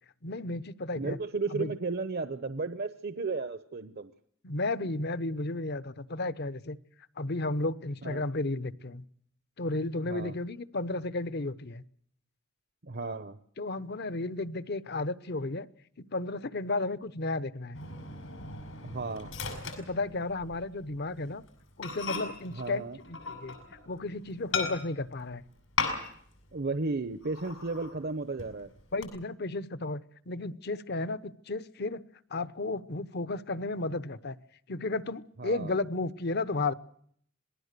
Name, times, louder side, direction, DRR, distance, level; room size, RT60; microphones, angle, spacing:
voice 1, 0.2-1.2 1.5-1.7 4.4-6.8 7.2-9.0 9.6-11.8 13.6-15.7 16.0-17.8 19.6-21.4 21.8-23.6 23.9-25.4 28.9-32.0 32.3-34.4 34.7-36.7, left 2 dB, 55° left, 15 dB, 1.0 m, -33 dB
voice 2, 0.9-4.1 8.0-8.2 10.0-10.3 12.8-13.4 18.8-19.3 22.5-23.0 26.5-28.7 35.4-35.8, right 3 dB, 55° right, 11 dB, 0.9 m, -34 dB
Microwave oven, 17.7-20.6 20.9-21.2 21.5-21.6 21.8-23.9 24.5-25.1 25.8-26.4 26.6-26.7 27.2-28.0 28.4-29.0, left 4 dB, 85° left, 6.4 m, -37 dB
26.5 x 19.5 x 6.8 m, 0.64 s
head